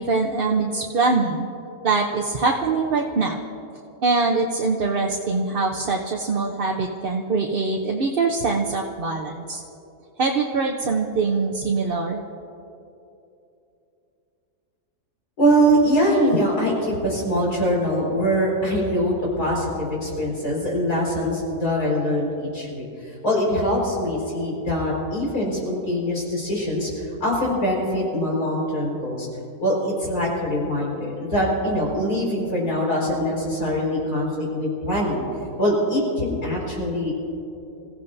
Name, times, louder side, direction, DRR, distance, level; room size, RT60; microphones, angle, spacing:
voice 1, 0.0-1.5 1.8-3.4 4.0-9.6 10.2-12.2, right 4 dB, 45° right, 0 dB, 0.8 m, -23 dB
voice 2, 15.4-26.9 27.2-29.3 29.6-35.2 35.6-37.1, equal, 80° left, -4 dB, 5.2 m, -23 dB
27.0 x 15.5 x 2.7 m, 2.8 s
omnidirectional pair, 1.6 m